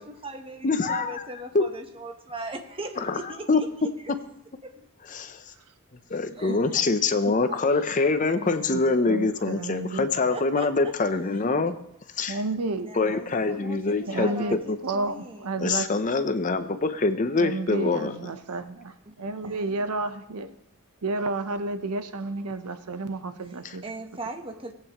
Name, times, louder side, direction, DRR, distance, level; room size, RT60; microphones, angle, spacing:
voice 1, 0.0-4.1 4.6-4.9 6.4-6.8 7.5-7.6 10.3-10.9 12.6-15.5 19.1-19.9 23.8-24.7, right 2 dB, 25° right, 5 dB, 0.9 m, -39 dB
voice 2, 0.6-1.2 1.5-1.6 3.0-3.2 3.5-3.6 5.1-5.4 6.1-11.8 12.2-12.4 13.0-14.3 14.7-14.8 15.6-18.1, left 3 dB, 35° left, 10 dB, 0.5 m, -24 dB
voice 3, 8.4-8.8 9.1-10.1 12.3-12.9 14.1-15.9 17.3-20.5 21.0-23.8, right 3 dB, 90° right, 10 dB, 0.7 m, -31 dB
17.5 x 8.4 x 3.0 m, 0.76 s
head